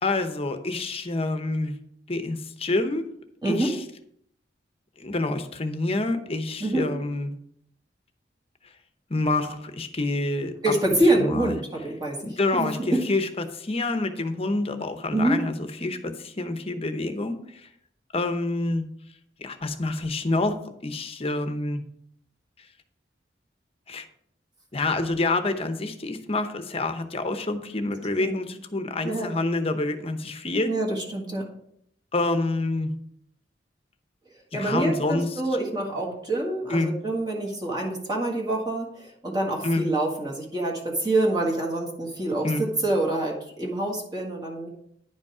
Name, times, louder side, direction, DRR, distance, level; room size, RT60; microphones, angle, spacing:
voice 1, 0.0-1.8 2.1-3.0 3.4-3.8 5.0-7.3 9.1-10.6 11.2-11.5 12.2-13.3 13.5-17.4 18.1-18.8 19.4-21.8 23.9-24.0 24.7-30.7 32.1-32.9 34.6-35.3 36.7-36.9 39.6-39.9 42.4-42.6, left 2 dB, 35° left, 8 dB, 0.8 m, -27 dB
voice 2, 3.4-3.8 6.6-6.9 10.6-13.1 15.1-15.4 28.2-28.3 29.0-29.3 30.7-31.5 34.5-44.7, right 1 dB, 25° right, -2 dB, 1.6 m, -26 dB
10.5 x 5.2 x 4.9 m, 0.70 s
head